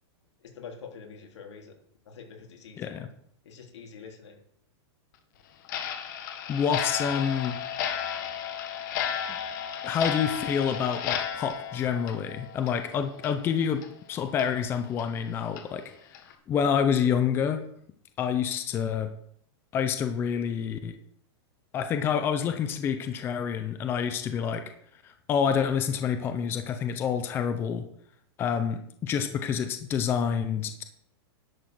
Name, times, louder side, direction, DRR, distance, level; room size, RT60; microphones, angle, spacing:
voice 1, 0.4-1.8 2.1-3.0 3.4-4.4, left 6 dB, 85° left, 1 dB, 3.5 m, -45 dB
voice 2, 2.8-3.1 6.5-7.6 9.8-13.8 14.1-15.8 16.5-17.6 18.2-19.1 19.7-21.0 21.7-24.6 25.0-27.9 28.4-30.8, left 7 dB, 15° left, 8 dB, 0.6 m, -28 dB
Clock, 5.7-12.9 13.2-13.3 13.8-13.9 14.4-14.5 15.0-15.1 15.6-15.7 16.1-16.3, left 8 dB, 45° left, 1.5 m, -33 dB
10.5 x 7.3 x 6.1 m, 0.66 s
supercardioid pair, 170°, 14 cm